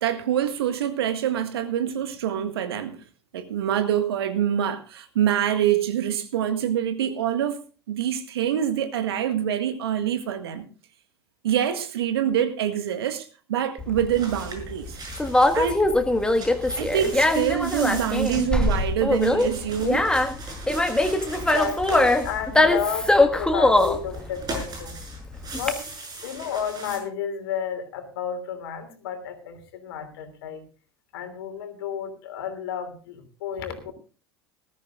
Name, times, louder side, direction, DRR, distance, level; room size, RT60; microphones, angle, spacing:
voice 1, 0.0-3.0 3.3-7.6 7.9-10.6 11.4-15.0 15.5-15.8 16.7-20.1, right 10 dB, 70° right, 1.7 m, -25 dB
Conversation, 13.8-25.7, left 2 dB, 5° left, 1.7 m, -22 dB
sound 1, 14.1-15.8 16.1-23.1 23.7-27.0, right 2 dB, 30° right, 6.6 m, -39 dB
voice 2, 20.9-25.0 25.5-25.8 26.2-30.6 31.1-33.9, left 8 dB, 65° left, 3.0 m, -32 dB
20.0 x 13.5 x 2.5 m
figure-of-eight pair, 80°, 14 cm